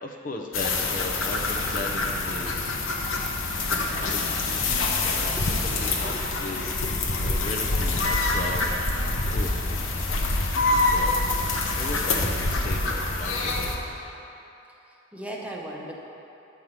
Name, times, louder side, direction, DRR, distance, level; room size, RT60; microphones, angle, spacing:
voice 1, 0.0-2.8 4.1-5.3 5.6-6.1 6.4-8.7 9.0-9.5 10.1-10.2 10.7-11.2 11.5-13.9, left 2 dB, 40° left, 1 dB, 0.7 m, -37 dB
sound 1, 0.5-13.8, left 2 dB, 85° left, 1.1 m, -26 dB
voice 2, 5.2-6.2 7.1-7.5 9.3-9.4 14.8-15.9, right 1 dB, 5° right, -2 dB, 0.9 m, -40 dB
11.0 x 4.8 x 7.4 m, 2.9 s
head